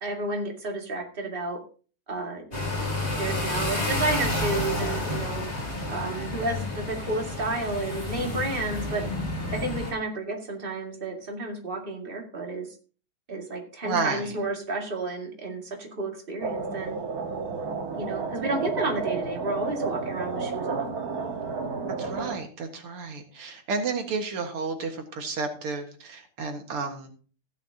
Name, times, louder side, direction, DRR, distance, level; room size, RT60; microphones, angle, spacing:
voice 1, 0.0-1.6 2.1-2.7 3.0-5.5 5.9-9.1 9.5-12.7 13.3-17.0 17.9-21.0, right 2 dB, 25° right, 1 dB, 2.3 m, -31 dB
sound 1, 2.5-9.9, left 1 dB, 30° left, 3.7 m, -30 dB
voice 2, 13.8-14.2 22.0-27.2, right 4 dB, 90° right, 5 dB, 2.6 m, -31 dB
sound 2, 16.4-22.4, right 4 dB, 45° right, 1.8 m, -31 dB
15.5 x 10.5 x 2.8 m, 0.39 s
omnidirectional pair, 2.4 m